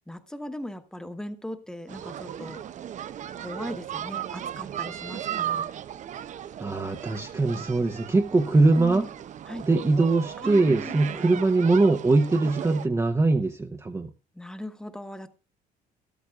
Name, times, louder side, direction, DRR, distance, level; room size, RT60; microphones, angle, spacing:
voice 1, 0.1-2.6 3.4-5.7 8.8-9.1 9.5-9.6 10.4-11.1 14.3-15.3, equal, 5° left, 9 dB, 1.1 m, -38 dB
sound 1, 1.9-12.9, right 10 dB, 45° right, 0.6 m, -36 dB
voice 2, 6.6-9.1 9.6-14.1, right 3 dB, 15° right, 4 dB, 0.8 m, -22 dB
13.5 x 13.0 x 2.4 m, 0.33 s
cardioid pair, 110°, 17 cm